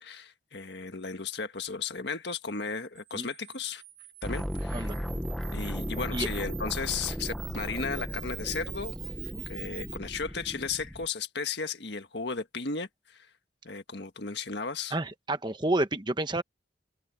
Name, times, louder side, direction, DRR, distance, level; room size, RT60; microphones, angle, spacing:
voice 1, 0.0-3.8 4.2-4.9 5.5-8.9 9.5-13.3 13.6-14.9, left 5 dB, 65° left, 1.6 m, -35 dB
Camera, 3.0-10.0, right 18 dB, 75° right, 4.0 m, -45 dB
sound 1, 4.2-11.1, equal, ahead, 1.1 m, -36 dB
voice 2, 14.9-16.4, right 2 dB, 25° right, 1.1 m, -29 dB
open air
head